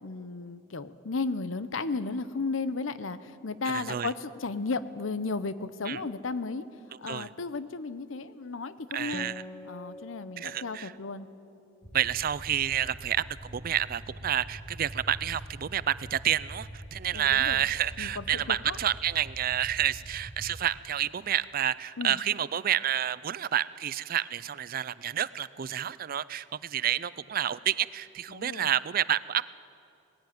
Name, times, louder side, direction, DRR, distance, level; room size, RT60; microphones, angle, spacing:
voice 1, 0.0-3.2 3.4-6.6 7.0-9.3 9.6-11.3 17.1-17.6 18.0-18.8 22.0-22.2 28.3-28.7, left 3 dB, 85° left, 14 dB, 0.8 m, -34 dB
voice 2, 3.7-4.1 5.9-6.0 7.1-7.3 8.9-9.4 10.4-10.9 11.9-29.4, right 10 dB, 45° right, 18 dB, 0.4 m, -29 dB
Acoustic guitar, 9.1-12.9, left 1 dB, 10° left, 0.8 m, -47 dB
sound 1, 11.8-20.6, equal, 45° left, 5.1 m, -44 dB
19.5 x 15.5 x 9.3 m, 2.5 s
head